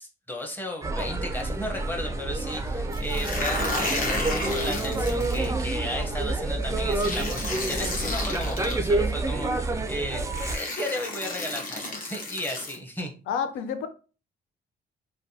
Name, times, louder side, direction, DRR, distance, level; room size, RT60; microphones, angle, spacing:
voice 1, 0.0-10.3 10.5-13.1, left 1 dB, 10° left, 0.8 m, -34 dB
sound 1, 0.8-10.6, right 2 dB, 15° right, 0.4 m, -28 dB
sound 2, 2.9-5.5 6.9-8.7 9.8-9.9 10.3-12.8, left 2 dB, 45° left, 1.0 m, -32 dB
voice 2, 13.3-13.9, left 7 dB, 90° left, 0.5 m, -29 dB
3.2 x 2.2 x 2.7 m
cardioid pair, 90°, 20 cm